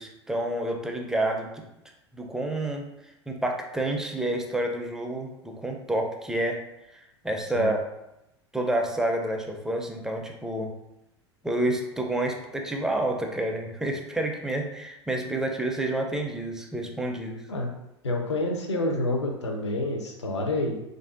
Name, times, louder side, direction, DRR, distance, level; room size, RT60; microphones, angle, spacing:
voice 1, 0.0-1.6 2.1-2.8 3.3-6.6 6.9-7.8 8.5-10.7 11.4-17.4, right 1 dB, 5° right, 2 dB, 0.4 m, -29 dB
voice 2, 18.0-20.8, left 2 dB, 75° left, 2 dB, 0.6 m, -28 dB
3.3 x 2.6 x 2.4 m, 0.88 s
figure-of-eight pair, 80°, 15 cm